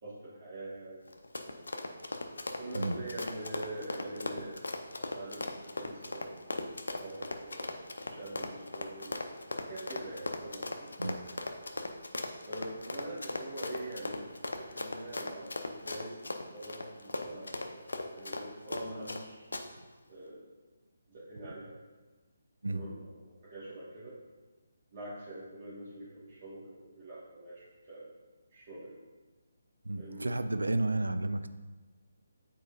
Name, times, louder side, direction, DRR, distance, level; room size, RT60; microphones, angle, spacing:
voice 1, 0.0-1.1 1.4-1.5 2.5-4.6 5.0-6.6 6.9-7.8 8.0-9.2 9.6-10.9 12.4-19.5 20.1-20.4 21.1-21.8 22.7-24.2 24.9-28.1 28.5-29.0 30.0-30.3, right 1 dB, 35° right, -12 dB, 1.9 m, -44 dB
Run, 1.1-19.2 19.5-19.6, left 2 dB, 70° left, 0.6 m, -38 dB
voice 2, 29.8-31.5, right 2 dB, 80° right, 10 dB, 0.4 m, -32 dB
8.5 x 4.3 x 2.7 m, 1.3 s
figure-of-eight pair, 145°, 0 cm